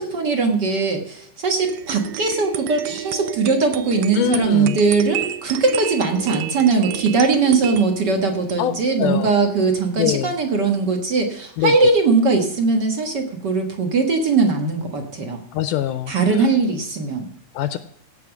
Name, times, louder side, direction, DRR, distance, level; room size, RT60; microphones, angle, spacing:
voice 1, 0.0-15.4 16.1-17.3, right 4 dB, 45° right, 4 dB, 1.4 m, -20 dB
sound 1, 1.6-9.9, right 11 dB, 85° right, 1.6 m, -32 dB
voice 2, 4.2-4.8 8.6-8.7 9.0-9.3 10.0-10.3 11.6-11.7 15.5-16.5 17.5-17.8, left 12 dB, 80° left, 11 dB, 2.0 m, -23 dB
16.0 x 6.0 x 5.9 m, 0.67 s
omnidirectional pair, 4.0 m